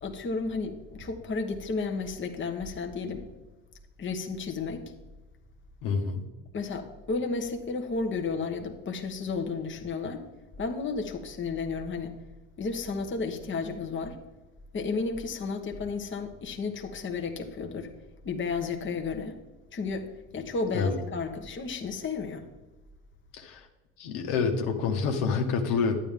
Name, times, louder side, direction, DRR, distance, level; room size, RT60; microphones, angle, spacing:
voice 1, 0.0-3.3 4.0-4.8 6.5-10.2 10.6-12.1 12.6-14.2 14.7-17.9 18.2-19.4 19.7-20.1 20.3-22.5, left 4 dB, 30° left, 4 dB, 1.2 m, -32 dB
voice 2, 5.8-6.2 20.7-21.0 23.3-23.7 24.0-25.9, left 5 dB, 75° left, 4 dB, 1.5 m, -27 dB
11.0 x 9.1 x 3.7 m, 1.1 s
supercardioid pair, 85°, 41 cm